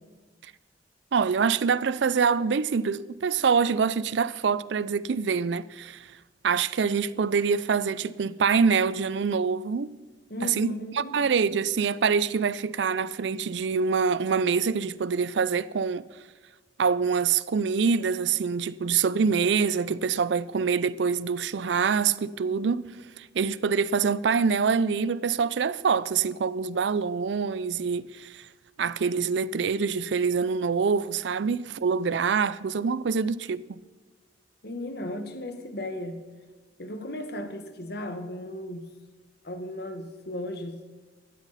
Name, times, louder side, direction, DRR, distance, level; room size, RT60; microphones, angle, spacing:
voice 1, 1.1-6.1 6.4-9.9 10.4-16.0 16.8-28.5 28.8-33.8, right 5 dB, 75° right, 0.4 m, -25 dB
voice 2, 10.3-11.1 34.6-36.3 36.8-38.9 39.4-40.8, left 1 dB, 60° left, 1.4 m, -36 dB
16.0 x 13.0 x 4.1 m
head